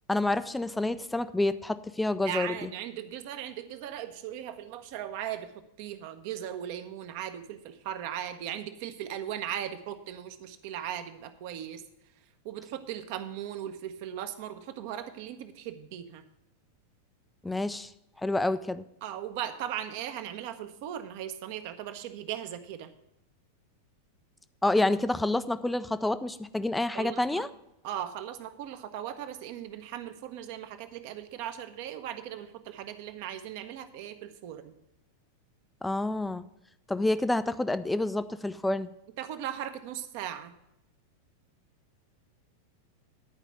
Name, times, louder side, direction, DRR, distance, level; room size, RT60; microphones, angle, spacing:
voice 1, 0.1-2.7 17.4-17.9 18.2-18.8 24.6-27.5 35.8-36.4 36.9-38.9, left 2 dB, 5° left, 13 dB, 0.4 m, -28 dB
voice 2, 2.2-5.5 5.8-11.8 12.4-16.2 19.0-22.9 26.9-27.4 27.8-34.7 39.2-40.5, right 10 dB, 45° right, 9 dB, 0.8 m, -38 dB
10.5 x 4.9 x 8.0 m, 0.83 s
figure-of-eight pair, 90°, 0 cm